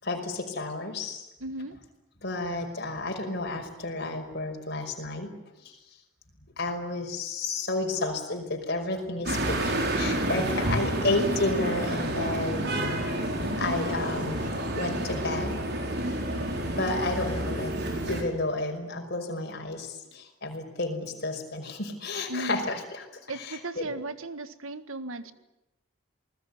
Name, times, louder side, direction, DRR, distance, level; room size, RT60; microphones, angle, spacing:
voice 1, 0.0-1.3 2.2-5.3 5.6-5.8 6.6-14.5 14.7-15.7 16.8-17.7 18.1-23.9, left 2 dB, 50° left, 3 dB, 5.6 m, -31 dB
voice 2, 1.4-1.8 10.5-11.2 16.0-16.3 22.3-22.6 23.3-25.3, right 2 dB, 90° right, 11 dB, 1.8 m, -36 dB
sound 1, 9.2-18.2, right 1 dB, 50° right, 5.0 m, -29 dB
28.0 x 20.0 x 9.7 m, 0.93 s
head